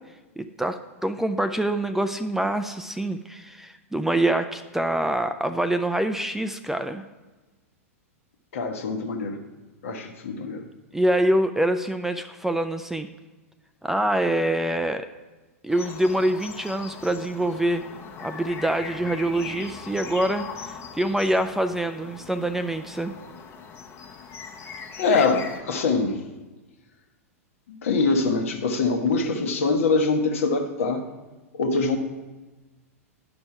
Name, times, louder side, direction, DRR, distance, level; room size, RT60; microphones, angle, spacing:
voice 1, 0.4-7.0 10.9-13.1 13.8-15.1 15.6-17.9 18.2-20.5 20.9-23.1, right 1 dB, 5° right, 9 dB, 0.3 m, -25 dB
voice 2, 8.5-9.4 9.8-10.6 25.0-26.2 27.8-31.0 31.5-32.0, left 4 dB, 65° left, 5 dB, 1.1 m, -23 dB
sound 1, 15.7-25.6, left 5 dB, 35° left, 1.0 m, -40 dB
10.5 x 5.4 x 4.6 m, 1.2 s
figure-of-eight pair, 100°, 8 cm